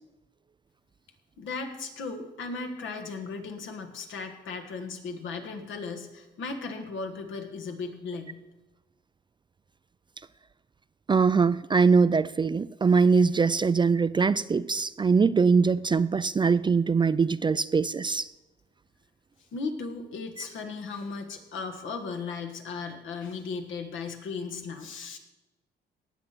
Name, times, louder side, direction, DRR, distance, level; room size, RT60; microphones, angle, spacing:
voice 1, 1.4-8.4 19.5-25.2, left 4 dB, 75° left, 5 dB, 1.7 m, -36 dB
voice 2, 11.1-18.3, right 5 dB, 25° right, 16 dB, 0.4 m, -22 dB
18.5 x 6.9 x 6.0 m, 1.1 s
cardioid pair, 90°, 20 cm